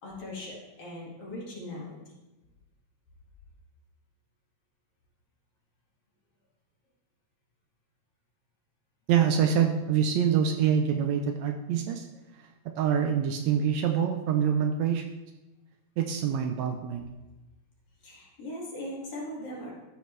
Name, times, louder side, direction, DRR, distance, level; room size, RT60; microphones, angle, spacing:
voice 1, 0.0-2.0 18.0-19.7, left 1 dB, 50° left, -4 dB, 2.9 m, -39 dB
voice 2, 9.1-12.1 12.4-12.5 12.8-15.1 16.0-17.1, right 8 dB, 75° right, 4 dB, 1.8 m, -25 dB
14.0 x 6.8 x 3.2 m, 1.1 s
omnidirectional pair, 3.4 m